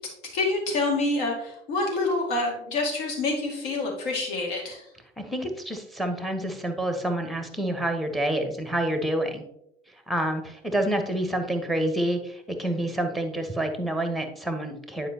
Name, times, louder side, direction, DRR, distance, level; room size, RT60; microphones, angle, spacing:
voice 1, 0.3-4.9, left 2 dB, 65° left, 0 dB, 2.2 m, -27 dB
voice 2, 5.2-9.4 10.1-15.1, right 1 dB, ahead, 6 dB, 1.1 m, -28 dB
9.8 x 4.9 x 2.9 m, 0.77 s
figure-of-eight pair, 70°, 30 cm